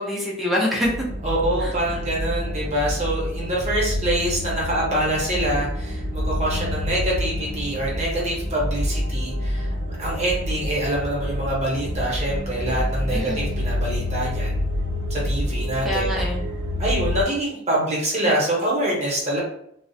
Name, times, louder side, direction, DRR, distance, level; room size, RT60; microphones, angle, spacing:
voice 1, 0.0-1.1 1.6-2.0 13.1-13.7 15.8-16.4, left 1 dB, ahead, -4 dB, 0.4 m, -26 dB
sound 1, 0.8-17.2, left 1 dB, 70° right, 0.6 m, -27 dB
voice 2, 1.2-14.6 15.1-16.1 16.8-19.4, right 1 dB, 35° right, -4 dB, 0.8 m, -25 dB
2.3 x 2.0 x 2.6 m, 0.70 s
head